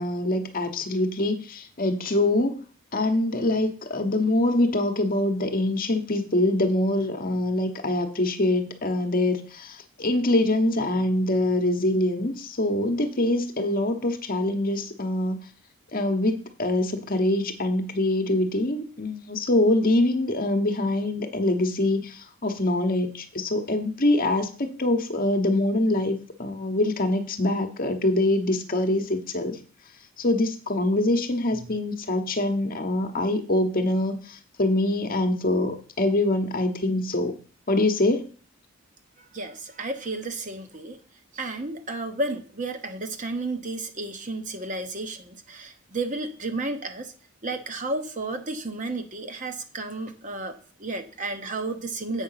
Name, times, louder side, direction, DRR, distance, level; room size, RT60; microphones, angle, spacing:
voice 1, 0.0-2.6 2.9-15.4 15.9-29.6 30.2-37.3 37.7-38.2, left 1 dB, 40° left, 6 dB, 1.0 m, -24 dB
voice 2, 39.2-41.0 41.3-47.1 47.4-52.2, right 2 dB, 35° right, 7 dB, 1.0 m, -32 dB
8.2 x 5.8 x 5.7 m, 0.40 s
head